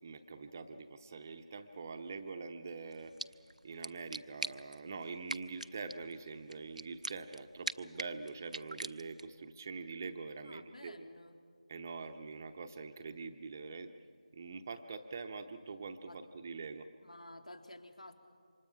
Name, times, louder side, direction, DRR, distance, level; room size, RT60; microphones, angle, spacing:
voice 1, 0.0-3.1 3.6-11.1 11.7-13.9 14.3-16.9, right 4 dB, 25° right, 7 dB, 0.8 m, -44 dB
sound 1, 2.9-9.4, right 1 dB, 75° right, 0.7 m, -45 dB
voice 2, 10.4-11.4 16.0-16.2 17.0-18.1, left 1 dB, 65° left, 6 dB, 2.5 m, -52 dB
27.5 x 25.0 x 5.8 m, 2.2 s
figure-of-eight pair, 160°, 4 cm